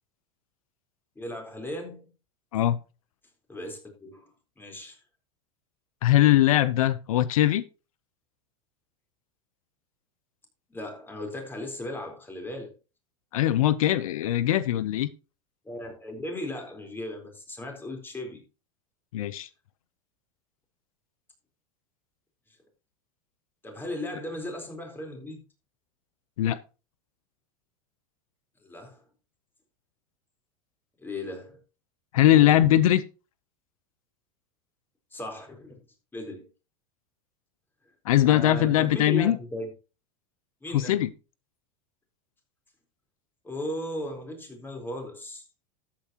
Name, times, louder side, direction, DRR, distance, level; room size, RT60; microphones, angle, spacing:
voice 1, 1.2-2.1 3.5-5.0 10.7-12.7 15.6-18.4 23.6-25.4 28.6-29.0 31.0-31.6 32.3-32.8 35.1-35.8 36.1-36.4 38.2-39.7 40.6-41.0 43.4-45.4, left 1 dB, 10° left, 4.1 m, -37 dB
voice 2, 6.0-7.6 13.3-15.1 19.1-19.5 26.4-26.6 32.1-33.0 38.1-39.4 40.7-41.1, left 13 dB, 90° left, 0.8 m, -21 dB
13.0 x 8.8 x 2.9 m
supercardioid pair, 125°, 17 cm